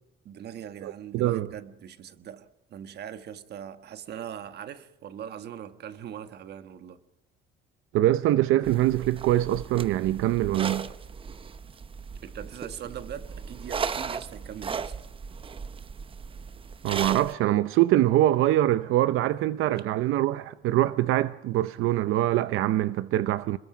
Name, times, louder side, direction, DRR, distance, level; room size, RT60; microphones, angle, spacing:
voice 1, 0.2-7.0 12.2-14.9, right 9 dB, 55° right, 1.4 m, -41 dB
voice 2, 0.8-1.5 7.9-10.9 16.8-23.6, right 14 dB, 85° right, 0.6 m, -24 dB
sound 1, 8.6-17.3, right 6 dB, 25° right, 0.8 m, -36 dB
27.5 x 21.5 x 5.0 m
cardioid pair, 155°, 21 cm